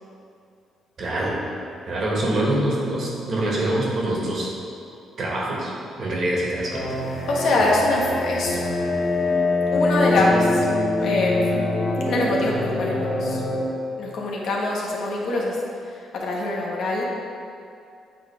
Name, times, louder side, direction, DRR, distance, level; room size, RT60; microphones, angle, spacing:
voice 1, 1.0-1.4 1.9-4.5 5.2-5.7 6.0-6.9, right 1 dB, 55° right, -4 dB, 1.7 m, -24 dB
sound 1, 6.7-13.6, left 2 dB, 50° left, 1.4 m, -24 dB
voice 2, 7.3-8.6 9.7-10.7 11.0-11.4 12.1-13.4 14.0-15.6 16.1-17.0, left 2 dB, 70° left, -3 dB, 1.3 m, -23 dB
8.3 x 3.6 x 5.0 m, 2.5 s
cardioid pair, 90°, 0 cm